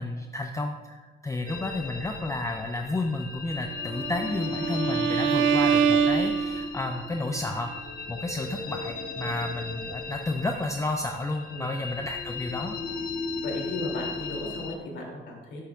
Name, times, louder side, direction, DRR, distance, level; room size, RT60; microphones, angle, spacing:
voice 1, 0.0-12.8, left 2 dB, 15° left, 4 dB, 0.5 m, -32 dB
sound 1, 1.5-14.7, left 4 dB, 45° left, 1.1 m, -36 dB
Bowed string instrument, 3.9-7.0, right 7 dB, 80° right, 0.5 m, -25 dB
voice 2, 13.4-15.6, left 2 dB, 65° left, -2 dB, 2.8 m, -35 dB
12.0 x 7.2 x 2.4 m, 1.3 s
cardioid pair, 90°, 20 cm